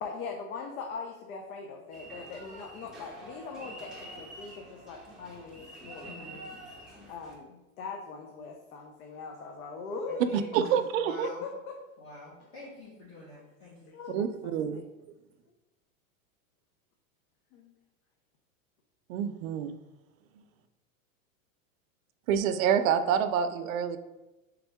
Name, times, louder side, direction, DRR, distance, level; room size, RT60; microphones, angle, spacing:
voice 1, 0.0-6.4 7.1-10.7 11.2-11.8 13.9-14.2 14.4-14.8 17.5-17.7, left 4 dB, 85° left, 2 dB, 0.7 m, -41 dB
sound 1, 1.9-7.4, right 1 dB, ahead, 0.5 m, -47 dB
voice 2, 6.0-6.4 10.1-10.5 11.0-11.4 12.0-13.9, left 2 dB, 40° left, -8 dB, 1.4 m, -47 dB
voice 3, 10.3-11.3 14.1-14.8 19.1-19.8 22.3-24.0, right 8 dB, 75° right, 9 dB, 0.5 m, -27 dB
3.6 x 3.5 x 3.5 m, 1.1 s
supercardioid pair, 145°, 41 cm